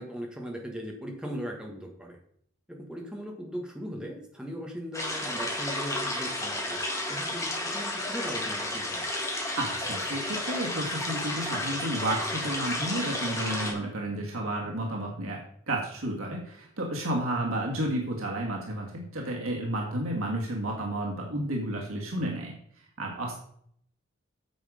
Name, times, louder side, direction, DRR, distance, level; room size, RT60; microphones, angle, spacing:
voice 1, 0.0-2.2 2.7-6.8 7.1-9.1, equal, 5° right, 0 dB, 1.5 m, -38 dB
sound 1, 4.9-13.7, left 1 dB, 15° left, 1.8 m, -32 dB
voice 2, 9.6-22.5 23.0-23.4, right 1 dB, 90° right, -1 dB, 1.8 m, -32 dB
9.1 x 6.4 x 5.0 m, 0.67 s
head